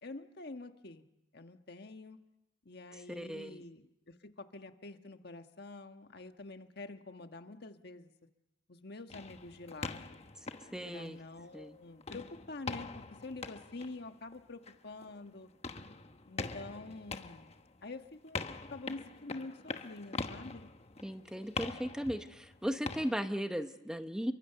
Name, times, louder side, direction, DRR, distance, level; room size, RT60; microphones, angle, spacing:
voice 1, 0.0-1.0 1.3-2.2 2.6-8.1 8.7-10.0 10.8-15.5 16.2-17.5 17.8-18.4 18.7-20.7, left 3 dB, 60° left, 7 dB, 1.4 m, -47 dB
voice 2, 3.1-3.6 10.7-11.2 11.5-11.8 21.0-24.3, equal, 5° right, 8 dB, 0.9 m, -37 dB
sound 1, 9.1-11.6 12.0-23.1, left 3 dB, 35° left, 1.1 m, -43 dB
29.0 x 23.5 x 6.8 m, 0.93 s
head